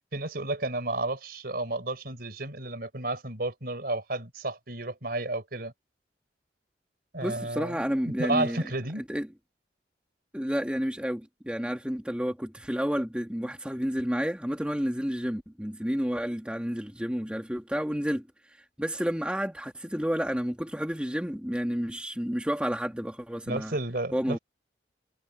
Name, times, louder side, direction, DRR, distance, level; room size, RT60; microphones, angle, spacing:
voice 1, 0.1-5.7 7.1-9.0 23.5-24.4, right 2 dB, 55° right, 4.5 m, -32 dB
voice 2, 7.2-8.6 9.0-9.3 10.3-23.7 24.1-24.4, equal, 5° right, 1.9 m, -30 dB
head